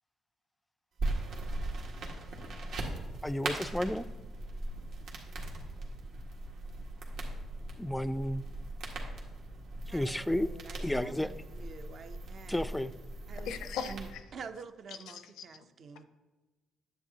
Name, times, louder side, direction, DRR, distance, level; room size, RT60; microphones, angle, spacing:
sound 1, 1.0-14.1, right 2 dB, 75° right, 1.6 m, -39 dB
voice 1, 3.2-4.1 7.8-8.4 9.9-10.5 10.8-11.3 12.5-12.9, left 1 dB, 5° left, 0.3 m, -32 dB
voice 2, 9.9-12.7 13.3-13.5 13.8-14.1 14.3-16.1, right 6 dB, 55° right, 0.6 m, -48 dB
voice 3, 13.4-14.2 14.9-16.1, left 7 dB, 90° left, 0.6 m, -41 dB
10.0 x 8.0 x 2.8 m
cardioid pair, 90°, 0 cm